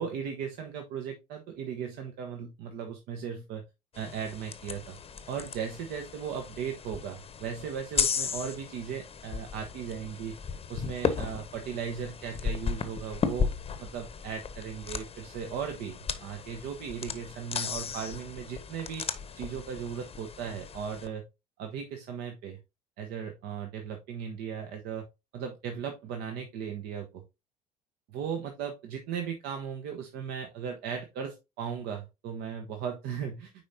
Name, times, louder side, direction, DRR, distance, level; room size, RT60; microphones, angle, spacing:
voice 1, 0.0-3.6 3.9-5.0 5.3-10.4 10.7-13.5 13.8-19.0 19.3-21.2 21.6-22.6 23.0-25.1 25.3-27.2 28.1-33.5, right 7 dB, 55° right, 4 dB, 1.0 m, -37 dB
sound 1, 3.9-21.1, left 6 dB, 30° left, 1.0 m, -35 dB
9.5 x 4.3 x 2.7 m, 0.24 s
figure-of-eight pair, 65°, 19 cm